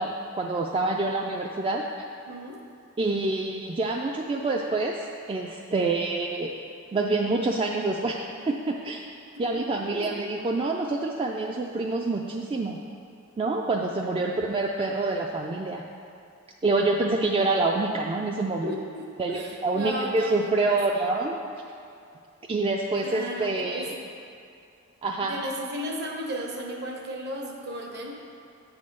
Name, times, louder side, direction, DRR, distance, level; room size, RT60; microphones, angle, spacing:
voice 1, 0.0-1.9 3.0-6.5 6.9-9.0 9.4-12.8 13.4-15.9 16.6-18.8 19.2-21.4 22.5-24.0 25.0-25.4, right 2 dB, 25° right, 0 dB, 0.3 m, -27 dB
voice 2, 2.3-2.6 9.5-10.1 14.1-14.4 18.6-21.1 23.0-23.9 25.2-28.1, equal, 55° right, 0 dB, 1.0 m, -35 dB
8.3 x 3.6 x 6.5 m, 2.5 s
head